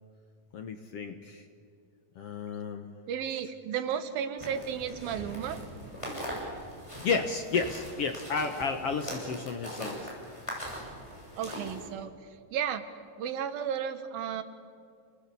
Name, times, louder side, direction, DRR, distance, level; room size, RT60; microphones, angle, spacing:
voice 1, 0.5-1.5 2.2-2.9 7.0-10.1, left 5 dB, 60° left, 7 dB, 1.6 m, -32 dB
voice 2, 3.1-5.6 11.4-12.1 12.5-12.9 13.2-14.4, right 8 dB, 90° right, 10 dB, 3.2 m, -33 dB
sound 1, 4.4-11.9, equal, 10° left, 7.0 m, -41 dB
30.0 x 20.0 x 8.4 m, 2.3 s
omnidirectional pair, 4.1 m